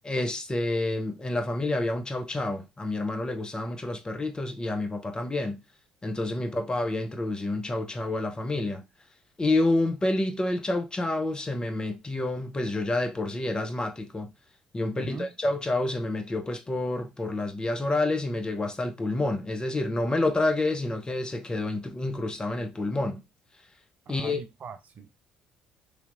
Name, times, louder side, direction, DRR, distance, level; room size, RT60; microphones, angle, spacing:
voice 1, 0.0-5.6 6.0-8.8 9.4-14.3 14.7-23.2 24.1-24.4, left 2 dB, 20° left, 0.7 m, -28 dB
voice 2, 14.9-15.3 24.1-25.1, right 5 dB, 45° right, 0.4 m, -41 dB
3.3 x 2.8 x 2.5 m
hypercardioid pair, 55°, 4 cm